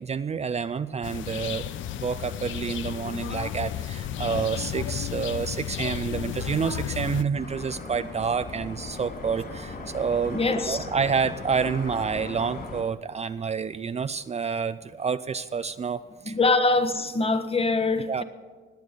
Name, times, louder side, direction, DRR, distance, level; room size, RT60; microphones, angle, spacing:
voice 1, 0.0-1.6 2.0-16.0 16.3-16.4 18.1-18.2, right 6 dB, 35° right, 12 dB, 0.5 m, -28 dB
sound 1, 1.0-7.2, left 10 dB, 75° left, 0.7 m, -33 dB
sound 2, 7.3-12.8, left 3 dB, 50° left, 4.1 m, -38 dB
voice 2, 10.3-10.8 16.3-18.2, left 3 dB, 30° left, 10 dB, 1.2 m, -23 dB
20.0 x 8.1 x 6.6 m, 1.5 s
cardioid pair, 90°, 20 cm